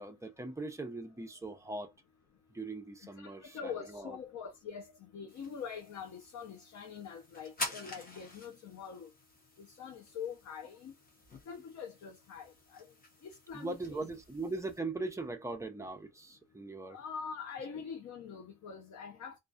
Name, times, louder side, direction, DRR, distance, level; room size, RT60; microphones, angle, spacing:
voice 1, 0.0-1.9 2.5-4.2 13.5-17.0, right 2 dB, 10° right, 0.4 m, -40 dB
voice 2, 3.2-9.1 9.6-10.9 11.5-12.9 13.2-14.1 16.9-19.4, left 6 dB, 70° left, 0.6 m, -44 dB
sound 1, 5.3-14.8, left 2 dB, 30° left, 0.8 m, -48 dB
2.4 x 2.2 x 2.5 m
wide cardioid pair, 170°, 30 cm